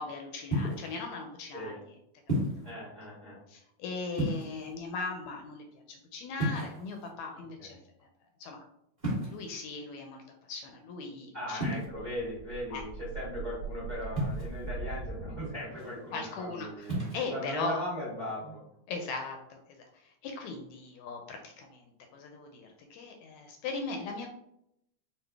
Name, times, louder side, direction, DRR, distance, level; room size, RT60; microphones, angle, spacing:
voice 1, 0.0-1.8 2.6-2.7 3.5-7.8 8.4-8.6 9.3-10.2 10.5-11.8 12.7-12.8 16.1-17.8 18.9-24.3, left 4 dB, 80° left, 3 dB, 1.8 m, -39 dB
sound 1, 0.5-0.9 2.3-2.7 4.1-4.8 6.4-7.1 9.0-9.5 11.6-11.8 14.2-14.7 16.8-17.2, right 1 dB, 25° right, 0.9 m, -32 dB
voice 2, 2.6-3.4 7.6-7.7 11.3-17.0 17.3-18.6, left 1 dB, 45° right, -7 dB, 0.5 m, -38 dB
sound 2, 11.9-16.1, right 4 dB, 85° right, 1.2 m, -41 dB
5.8 x 2.3 x 3.4 m, 0.77 s
omnidirectional pair, 3.5 m